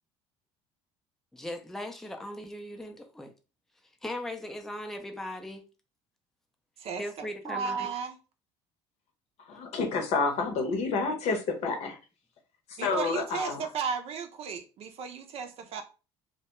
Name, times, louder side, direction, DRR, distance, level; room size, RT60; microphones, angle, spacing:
voice 1, 1.3-3.3 4.0-5.6 7.0-7.9 9.5-9.6, left 1 dB, 5° left, 0.5 m, -38 dB
voice 2, 6.8-8.2 12.8-15.8, right 6 dB, 55° right, 0.6 m, -35 dB
voice 3, 9.5-12.0 12.8-13.7, left 4 dB, 60° left, 0.8 m, -29 dB
2.3 x 2.1 x 2.9 m
supercardioid pair, 100°, 13 cm